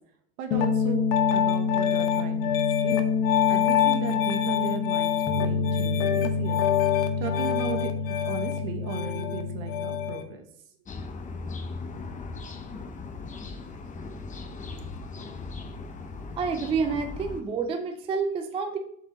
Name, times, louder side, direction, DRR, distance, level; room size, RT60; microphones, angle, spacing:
voice 1, 0.4-2.6 2.8-3.0 3.5-6.6 7.2-7.9 8.2-10.4, right 6 dB, 60° right, 6 dB, 1.5 m, -36 dB
Piano, 0.5-10.2, left 7 dB, 50° left, 1.0 m, -25 dB
sound 1, 10.9-17.4, left 3 dB, 15° left, 0.8 m, -38 dB
voice 2, 16.4-18.8, right 5 dB, 15° right, 5 dB, 0.5 m, -28 dB
7.3 x 4.5 x 4.1 m, 0.69 s
hypercardioid pair, 115°, 44 cm